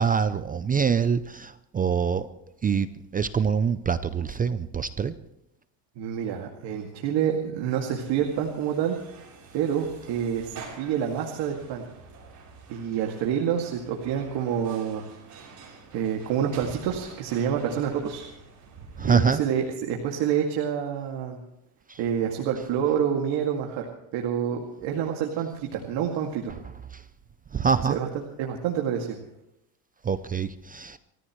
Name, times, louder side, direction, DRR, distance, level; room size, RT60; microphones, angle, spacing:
voice 1, 0.0-2.3 2.6-5.1 19.0-19.4 21.9-22.0 26.9-27.0 27.5-28.0 30.0-31.0, right 6 dB, 20° right, 13 dB, 0.5 m, -25 dB
voice 2, 6.0-9.0 9.5-11.9 12.7-15.0 15.9-18.2 19.0-21.4 22.0-26.5 27.8-28.1 28.4-29.2, right 8 dB, 65° right, 1 dB, 2.4 m, -27 dB
sound 1, 8.0-19.2, right 5 dB, 40° right, 6.6 m, -47 dB
28.5 x 14.5 x 3.2 m, 0.83 s
cardioid pair, 130°, 45 cm